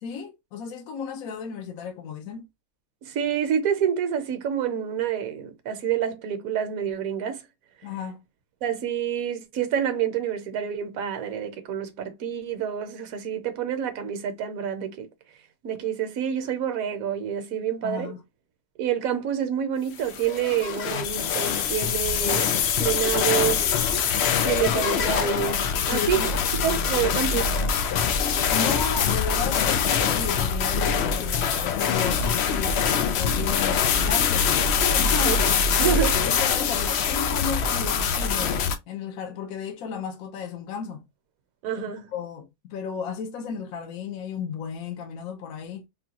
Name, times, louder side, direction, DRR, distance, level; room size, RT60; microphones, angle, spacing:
voice 1, 0.0-2.5 7.8-8.2 17.8-18.2 25.8-26.5 28.5-32.8 33.2-34.5 34.9-35.4 35.8-41.0 41.8-45.9, left 6 dB, 70° left, 1.0 m, -34 dB
voice 2, 3.0-7.4 8.6-15.1 15.6-18.1 18.8-22.5 22.8-23.7 24.4-26.2 26.6-27.5 35.2-35.5 35.8-36.2 41.6-42.1, right 9 dB, 65° right, 1.1 m, -27 dB
sound 1, 20.0-38.8, left 6 dB, 90° left, 0.5 m, -24 dB
3.7 x 2.2 x 2.8 m
omnidirectional pair, 1.7 m